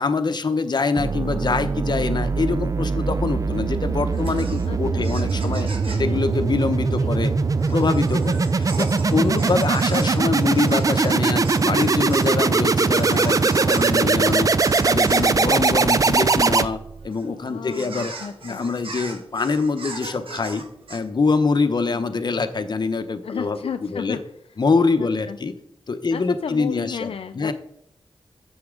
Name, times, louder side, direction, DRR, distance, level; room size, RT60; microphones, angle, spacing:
voice 1, 0.0-5.7 6.0-7.3 7.7-14.5 14.8-16.8 17.0-18.1 18.4-20.6 20.9-24.2 24.6-25.5 25.9-27.5, left 4 dB, 50° left, 8 dB, 0.8 m, -24 dB
sound 1, 1.0-17.1, right 4 dB, 35° right, 0.4 m, -21 dB
sound 2, 4.1-21.0, right 2 dB, 70° right, 1.3 m, -39 dB
voice 2, 5.1-6.2 7.0-7.1 9.1-9.5 14.6-15.5 17.5-18.6 21.8-22.0 23.2-24.2 25.0-25.4 26.1-27.5, left 7 dB, 75° left, 7 dB, 0.4 m, -34 dB
9.5 x 7.1 x 3.8 m, 0.71 s
wide cardioid pair, 95°, 10 cm